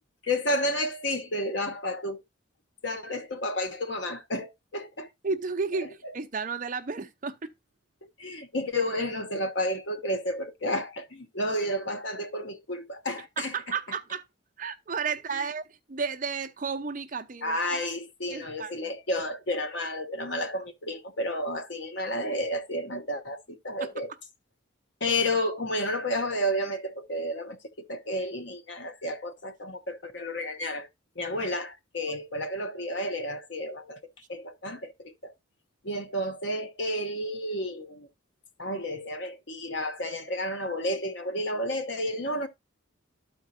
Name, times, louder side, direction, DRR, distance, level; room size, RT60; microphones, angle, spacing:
voice 1, 0.3-2.2 2.8-5.1 8.2-13.5 15.4-15.5 17.4-24.1 25.0-27.6 27.9-30.9 31.1-34.0 34.3-35.3 35.8-38.1 38.6-42.5, left 1 dB, 60° left, 1.1 m, -31 dB
voice 2, 5.2-7.5 13.4-14.3 14.6-17.8 18.3-18.9 23.8-23.9 32.1-32.2, right 5 dB, 40° right, 0.6 m, -33 dB
13.0 x 4.5 x 2.6 m
head